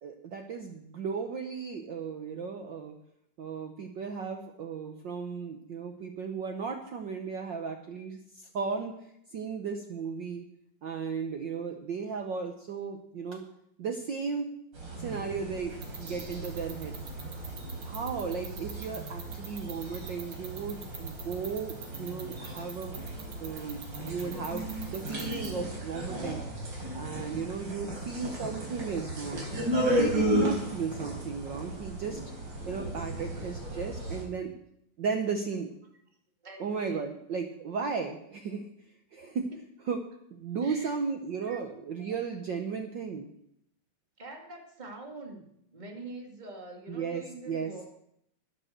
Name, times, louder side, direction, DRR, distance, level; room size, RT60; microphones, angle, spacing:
voice 1, 0.0-3.0 3.4-8.9 9.3-10.4 10.8-13.4 13.8-14.5 15.0-17.0 17.8-23.0 23.4-26.5 26.9-29.4 30.0-32.2 32.7-34.5 35.0-35.7 36.6-38.7 39.1-39.5 39.9-40.0 40.3-43.3 46.9-47.7, right 5 dB, 85° right, 4 dB, 1.0 m, -35 dB
sound 1, 14.7-34.2, right 1 dB, 35° right, 4.6 m, -35 dB
sound 2, 15.8-25.5, right 8 dB, 70° right, 3.0 m, -42 dB
voice 2, 36.4-37.1 40.6-40.9 41.4-42.1 44.2-47.9, right 2 dB, 15° right, 1 dB, 2.1 m, -45 dB
12.5 x 10.0 x 6.6 m, 0.75 s
omnidirectional pair, 3.5 m